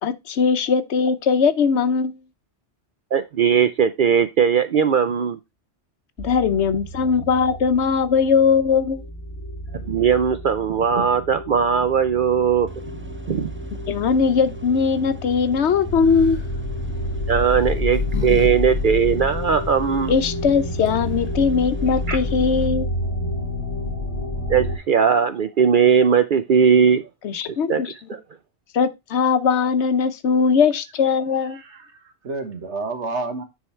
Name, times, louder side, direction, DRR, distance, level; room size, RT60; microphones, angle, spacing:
voice 1, 0.0-2.2 6.2-9.0 13.9-16.4 20.1-22.9 27.2-27.9 28.7-31.6, left 6 dB, 70° left, 1.0 m, -20 dB
voice 2, 3.1-5.4 9.7-12.7 13.3-13.5 17.3-20.1 22.1-22.2 24.5-27.0 27.7-28.2, right 7 dB, 55° right, 0.6 m, -19 dB
sound 1, 6.2-24.8, left 1 dB, 15° left, 3.2 m, -29 dB
sound 2, 12.7-22.7, right 4 dB, 15° right, 0.6 m, -41 dB
sound 3, 16.0-16.5 17.4-18.5 18.8-18.9 20.6-20.7 20.8-21.3, left 5 dB, 50° left, 2.1 m, -33 dB
voice 3, 31.5-33.4, right 3 dB, 75° right, 1.6 m, -30 dB
9.9 x 3.8 x 4.3 m
omnidirectional pair, 1.2 m